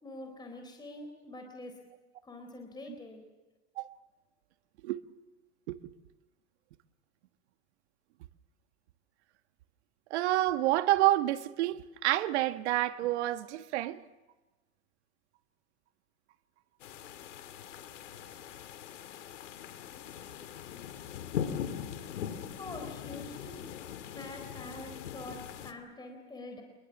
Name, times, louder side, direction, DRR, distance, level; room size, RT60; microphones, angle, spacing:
voice 1, 0.0-1.8 2.2-3.2 22.5-23.7 24.1-26.6, left 2 dB, 10° left, 3.9 m, -45 dB
voice 2, 10.1-14.0, right 15 dB, 70° right, 1.6 m, -28 dB
sound 1, 16.8-25.7, left 9 dB, 85° left, 2.5 m, -41 dB
26.5 x 22.0 x 7.3 m
supercardioid pair, 125°, 36 cm